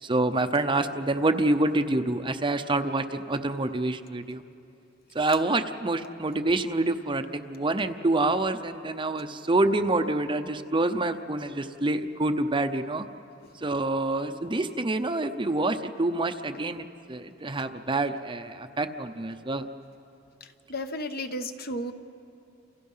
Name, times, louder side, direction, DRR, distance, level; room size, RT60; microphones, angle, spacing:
voice 1, 0.0-4.4 5.1-13.1 13.6-19.7, right 2 dB, 25° right, 8 dB, 0.7 m, -27 dB
voice 2, 20.7-21.9, left 1 dB, 50° left, 7 dB, 1.2 m, -33 dB
30.0 x 28.5 x 5.6 m, 2.7 s
head